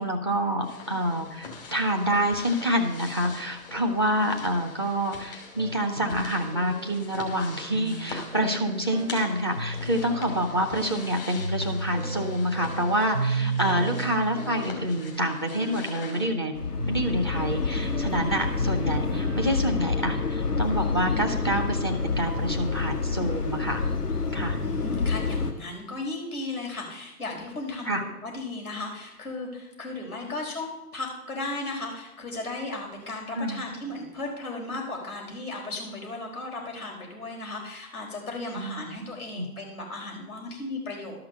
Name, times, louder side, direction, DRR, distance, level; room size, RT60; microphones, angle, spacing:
voice 1, 0.0-16.5 16.9-23.8 24.3-24.6 27.8-28.0 33.4-33.7 38.6-38.8 39.4-39.5, equal, 15° left, 4 dB, 0.6 m, -27 dB
sound 1, 0.6-16.3, left 4 dB, 35° left, 2.5 m, -43 dB
sound 2, 5.6-21.8, right 2 dB, 35° right, 0.4 m, -35 dB
voice 2, 13.4-13.7 24.5-41.2, left 2 dB, 70° left, -1 dB, 4.4 m, -35 dB
sound 3, 16.5-25.5, left 4 dB, 85° left, 1.6 m, -28 dB
12.0 x 5.9 x 6.6 m, 0.90 s
figure-of-eight pair, 150°, 46 cm